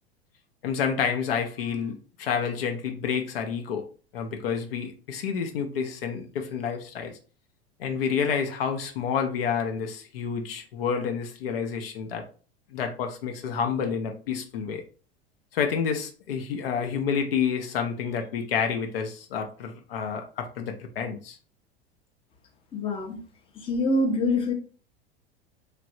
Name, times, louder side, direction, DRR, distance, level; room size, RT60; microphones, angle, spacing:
voice 1, 0.6-3.8 4.1-7.1 7.8-12.2 12.7-14.8 15.5-21.4, left 6 dB, 60° left, 5 dB, 0.6 m, -29 dB
voice 2, 22.7-23.2 23.6-24.5, left 2 dB, 15° left, 3 dB, 0.6 m, -25 dB
3.1 x 2.5 x 2.5 m, 0.38 s
figure-of-eight pair, 80°, 33 cm